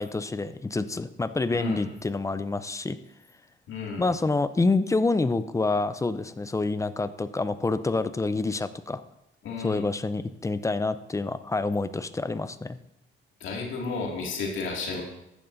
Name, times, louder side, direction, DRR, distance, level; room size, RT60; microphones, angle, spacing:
voice 1, 0.0-3.0 4.0-9.0 9.6-12.8, left 3 dB, 15° left, 13 dB, 0.5 m, -27 dB
voice 2, 1.5-1.8 3.7-4.1 9.4-9.8 13.4-15.0, left 4 dB, 80° left, -1 dB, 2.2 m, -32 dB
14.5 x 10.5 x 2.7 m, 0.87 s
cardioid pair, 90°, 20 cm